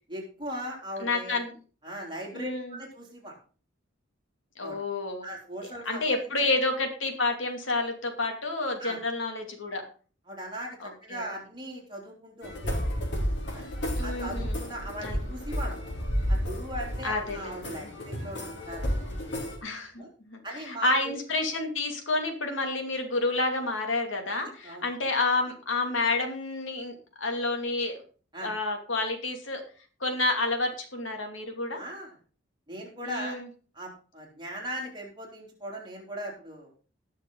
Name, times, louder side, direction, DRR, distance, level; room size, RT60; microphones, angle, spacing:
voice 1, 0.1-1.4 1.8-3.4 4.6-4.8 5.2-6.0 8.8-9.0 10.3-12.8 13.5-13.7 14.0-15.8 16.3-18.9 20.0-20.1 20.4-21.2 24.6-24.8 28.3-28.5 31.7-32.1 32.7-33.4 33.7-36.8, equal, 25° right, -1 dB, 3.6 m, -39 dB
voice 2, 1.0-1.5 2.3-2.7 4.6-5.2 5.6-9.8 10.8-11.2 14.0-14.6 15.0-15.2 17.0-17.9 19.6-19.9 20.3-28.0 28.4-29.6 30.0-31.8 33.0-33.4, left 2 dB, 80° left, 4 dB, 2.6 m, -29 dB
sound 1, 12.4-19.6, equal, 60° left, 3.6 m, -31 dB
19.0 x 6.4 x 3.9 m, 0.38 s
head